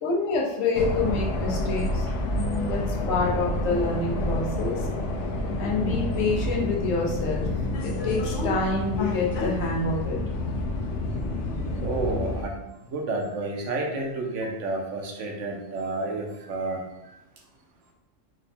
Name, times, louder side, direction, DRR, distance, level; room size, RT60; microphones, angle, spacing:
voice 1, 0.0-2.1 2.3-4.8 5.6-7.5 7.8-10.2, left 3 dB, 85° left, -3 dB, 1.2 m, -27 dB
sound 1, 0.7-12.4, left 1 dB, 70° left, 0.9 m, -28 dB
voice 2, 11.8-12.6 12.9-16.8, right 2 dB, 75° right, 1 dB, 1.1 m, -30 dB
5.0 x 2.2 x 4.2 m, 0.93 s
omnidirectional pair, 1.3 m